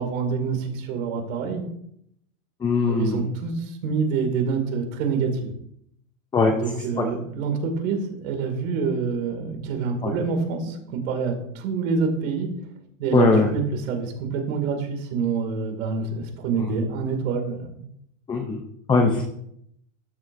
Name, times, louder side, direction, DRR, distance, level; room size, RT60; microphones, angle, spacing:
voice 1, 0.0-1.6 2.9-5.5 6.6-12.5 13.0-17.8, right 5 dB, 70° right, 4 dB, 2.5 m, -26 dB
voice 2, 2.6-3.3 6.3-6.5 7.0-7.1 10.0-10.1 13.1-13.5 16.6-16.7 18.3-18.6 18.9-19.2, left 4 dB, 10° left, 3 dB, 0.6 m, -20 dB
12.5 x 7.7 x 2.6 m, 0.73 s
supercardioid pair, 150°, 42 cm